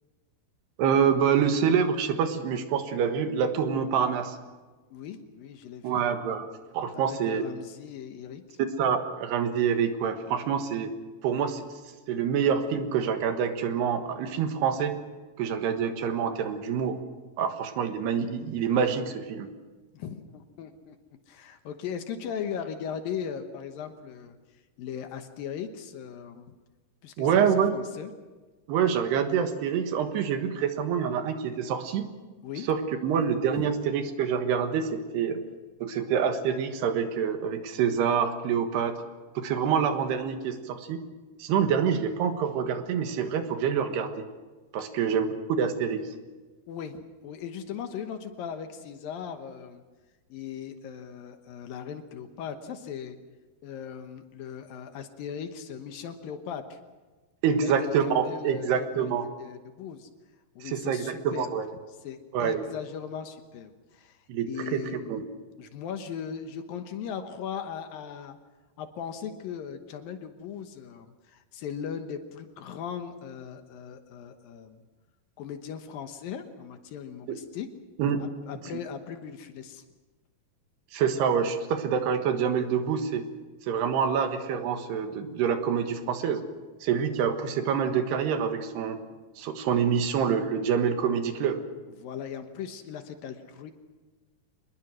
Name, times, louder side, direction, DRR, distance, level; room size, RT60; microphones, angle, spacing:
voice 1, 0.8-4.4 5.8-6.5 6.7-7.4 8.8-10.9 11.2-11.7 12.1-15.0 15.4-17.0 17.4-19.5 27.2-27.8 28.7-32.1 32.7-35.4 35.8-39.0 39.4-41.0 41.4-44.2 44.7-46.1 57.4-59.3 60.6-61.7 62.3-62.7 64.3-65.3 77.3-77.4 78.0-78.2 80.9-83.3 83.6-86.4 86.8-89.0 89.4-91.6, right 7 dB, 80° right, 7 dB, 3.6 m, -26 dB
voice 2, 4.9-6.0 6.9-8.6 19.9-21.0 21.3-24.4 24.8-26.5 27.0-27.5 27.7-28.1 32.4-32.7 33.6-33.7 46.7-49.8 50.3-53.2 53.6-56.8 57.6-59.1 59.4-60.1 60.6-61.5 62.0-64.2 64.5-65.1 65.6-68.4 68.8-74.8 75.4-77.7 78.2-79.8 92.0-93.7, left 7 dB, 70° left, 7 dB, 2.7 m, -38 dB
25.0 x 21.0 x 6.2 m, 1.3 s
omnidirectional pair, 4.7 m